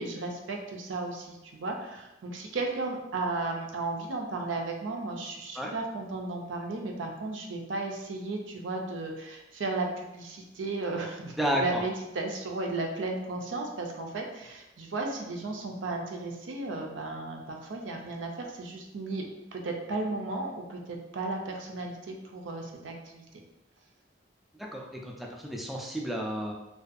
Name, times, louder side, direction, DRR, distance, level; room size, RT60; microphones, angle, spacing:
voice 1, 0.0-19.2 19.5-23.2, right 2 dB, 80° right, 2 dB, 0.5 m, -34 dB
voice 2, 11.4-11.8 24.7-26.5, equal, ahead, -1 dB, 0.3 m, -31 dB
2.5 x 2.2 x 2.5 m, 0.94 s
head